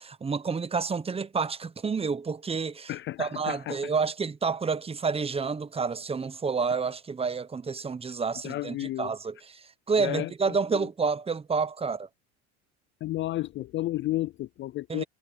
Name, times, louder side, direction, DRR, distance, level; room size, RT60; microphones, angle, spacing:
voice 1, 0.0-2.9 3.2-12.1 14.9-15.0, right 5 dB, 15° right, 1.1 m, -29 dB
voice 2, 2.9-3.8 8.4-9.1 10.0-10.3 13.0-15.0, left 16 dB, 35° left, 0.4 m, -32 dB
supercardioid pair, 110°, 33 cm